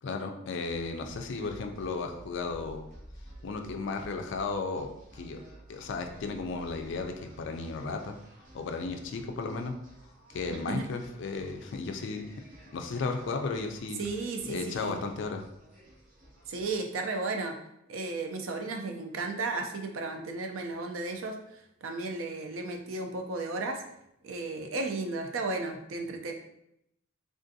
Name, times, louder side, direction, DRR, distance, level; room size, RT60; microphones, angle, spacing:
voice 1, 0.0-2.8 3.4-5.4 5.7-8.2 8.5-9.7 10.3-12.3 12.7-14.0 14.4-15.4, left 4 dB, 60° left, 5 dB, 0.4 m, -34 dB
sound 1, 0.7-16.7, right 1 dB, 40° right, 0.7 m, -53 dB
voice 2, 10.5-10.9 14.0-15.0 16.5-17.6 17.9-23.8 24.2-26.3, right 3 dB, 75° right, 4 dB, 0.4 m, -34 dB
3.6 x 2.5 x 2.6 m, 0.77 s
head